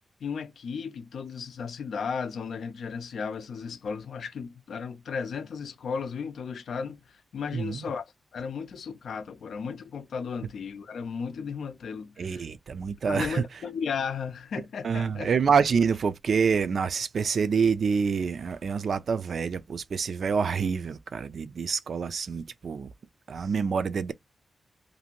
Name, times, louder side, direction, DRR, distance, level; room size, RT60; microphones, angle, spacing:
voice 1, 0.2-8.1 8.3-12.4 13.1-15.3, left 6 dB, 80° left, 0.4 m, -35 dB
voice 2, 7.5-7.9 12.2-13.4 14.8-22.9 23.3-24.1, right 6 dB, 60° right, 0.3 m, -27 dB
2.6 x 2.5 x 2.9 m
wide cardioid pair, 135°, 0 cm